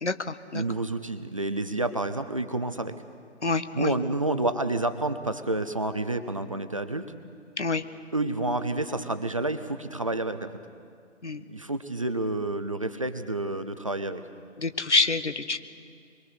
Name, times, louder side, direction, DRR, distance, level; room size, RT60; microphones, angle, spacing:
voice 1, 0.0-0.6 3.4-3.9 7.6-7.8 11.2-11.4 14.6-15.6, left 3 dB, 70° left, 11 dB, 1.3 m, -26 dB
voice 2, 0.5-2.9 3.7-7.0 8.1-10.5 11.5-14.2, right 2 dB, 30° right, 10 dB, 0.6 m, -29 dB
23.5 x 23.0 x 6.5 m, 2.2 s
figure-of-eight pair, 150°, 36 cm